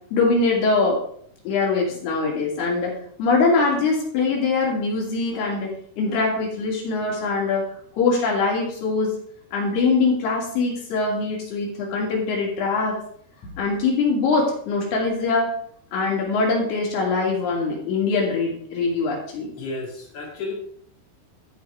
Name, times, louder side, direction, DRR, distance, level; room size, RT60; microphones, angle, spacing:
voice 1, 0.1-1.0 1.4-2.9 3.2-5.7 6.0-7.7 8.0-9.1 9.5-13.0 13.6-15.5 15.9-19.5, left 3 dB, 90° left, -2 dB, 4.6 m, -22 dB
voice 2, 19.6-20.5, left 3 dB, 55° left, -1 dB, 3.5 m, -32 dB
14.0 x 4.9 x 4.9 m, 0.64 s
omnidirectional pair, 4.4 m